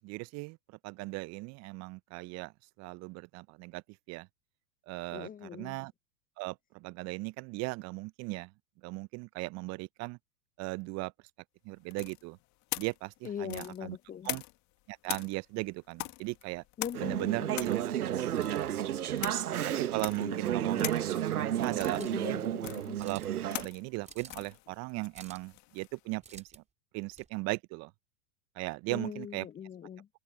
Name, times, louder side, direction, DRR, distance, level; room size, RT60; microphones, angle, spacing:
voice 1, 0.0-0.6 0.8-2.5 2.8-4.3 4.9-5.9 6.4-8.5 8.8-10.2 10.6-11.1 11.6-12.4 12.7-14.0 14.2-14.4 14.9-16.6 17.0-17.9 18.5-18.9 19.8-20.9 21.6-22.4 23.0-23.2 23.5-26.6 26.9-27.9 28.6-29.5, right 25 dB, 35° right, 0.9 m, -37 dB
voice 2, 5.1-5.8 13.2-14.3 16.8-18.0 20.2-20.7 22.0-23.0 28.9-30.1, left 8 dB, 20° left, 1.1 m, -41 dB
sound 1, 11.9-14.7 15.0-26.0, left 20 dB, 40° left, 2.0 m, -42 dB
Conversation / Chatter, 16.9-23.7, right 11 dB, 75° right, 1.1 m, -32 dB
sound 2, 22.0-22.2 23.0-23.4 24.0-24.5 25.1-25.5 26.2-26.6 27.1-27.3, right 5 dB, 15° right, 4.8 m, -51 dB
open air
figure-of-eight pair, 100°, 45 cm